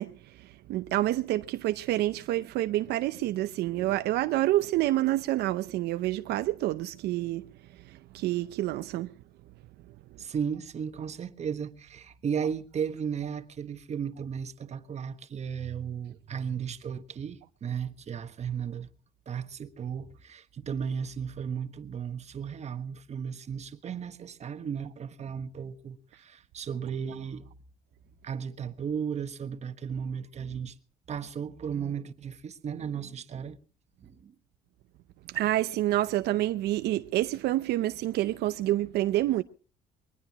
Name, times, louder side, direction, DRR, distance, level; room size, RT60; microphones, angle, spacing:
voice 1, 0.0-7.5 7.9-9.1 35.3-39.4, right 15 dB, 75° right, 0.7 m, -28 dB
voice 2, 10.2-18.9 19.3-27.5 28.2-30.7 31.1-33.6 34.0-34.3, right 7 dB, 40° right, 1.4 m, -35 dB
22.5 x 20.0 x 3.0 m
cardioid pair, 110°, 17 cm